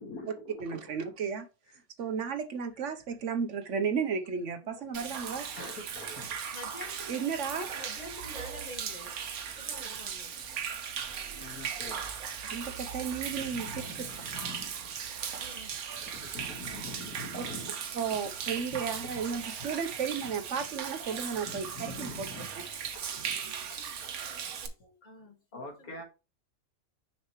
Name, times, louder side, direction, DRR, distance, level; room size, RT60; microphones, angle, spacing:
voice 1, 0.0-0.9 5.6-6.4 9.8-9.9 11.3-12.1 13.4-14.9 15.4-15.5 16.1-17.7 18.7-18.8 19.1-19.2 21.4-22.5 22.9-23.4 24.4-24.5 24.8-24.9 25.5-26.0, left 2 dB, 90° left, 2.1 m, -44 dB
voice 2, 0.6-1.5 2.0-5.5 7.1-7.7 12.4-13.8 17.9-22.3, right 6 dB, 60° right, 1.1 m, -33 dB
voice 3, 4.6-5.6 6.5-9.1 9.4-10.3 15.4-15.7 23.4-23.9 24.4-24.7 25.0-26.0, left 1 dB, 30° left, 1.7 m, -48 dB
Human voice / Rain / Stream, 4.9-24.7, right 7 dB, 85° right, 1.4 m, -38 dB
6.4 x 5.7 x 3.0 m
omnidirectional pair, 1.5 m